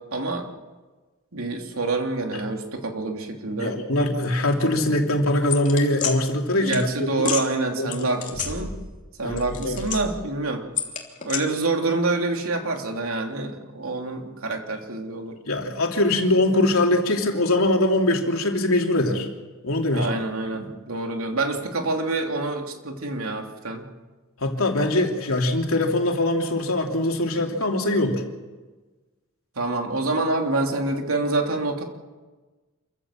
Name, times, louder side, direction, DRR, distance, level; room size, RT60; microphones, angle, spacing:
voice 1, 0.1-0.5 1.3-3.8 6.6-8.7 9.2-10.6 11.2-15.4 19.9-23.9 29.6-31.8, right 2 dB, 80° right, 3 dB, 2.9 m, -27 dB
voice 2, 3.6-6.9 7.2-7.3 7.8-8.1 9.2-9.8 15.4-19.3 19.6-20.2 20.5-20.7 24.4-28.2, left 1 dB, 75° left, 2 dB, 3.0 m, -22 dB
sound 1, 5.5-6.1 6.7-6.8 7.2-7.4 7.9-9.0 9.3-10.3 10.8-11.4, left 6 dB, 35° left, 2.9 m, -29 dB
27.0 x 15.0 x 7.4 m, 1.3 s
head